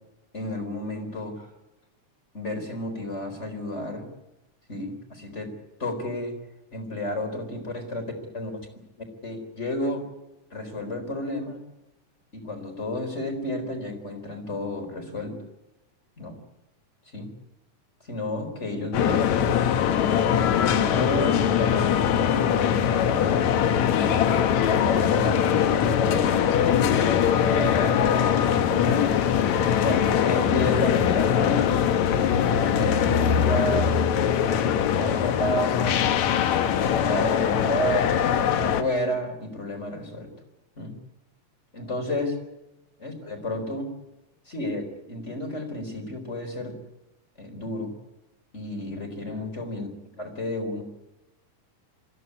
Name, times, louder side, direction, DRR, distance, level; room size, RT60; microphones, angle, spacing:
voice 1, 0.3-1.5 2.3-4.1 4.7-5.5 5.8-6.4 6.7-8.0 8.3-8.5 9.2-10.0 10.5-11.6 12.3-15.4 16.2-16.4 17.1-17.3 18.1-19.7 20.3-23.3 23.9-29.2 29.8-31.9 32.5-34.0 34.6-36.0 36.7-40.3 40.8-40.9 41.7-42.4 43.0-43.9 44.5-46.8 47.4-47.9 48.5-49.9 50.2-50.8, left 1 dB, 20° left, 6 dB, 4.2 m, -31 dB
sound 1, 18.9-38.8, left 8 dB, 75° left, 2.5 m, -22 dB
26.0 x 15.5 x 9.7 m, 0.97 s
omnidirectional pair, 3.4 m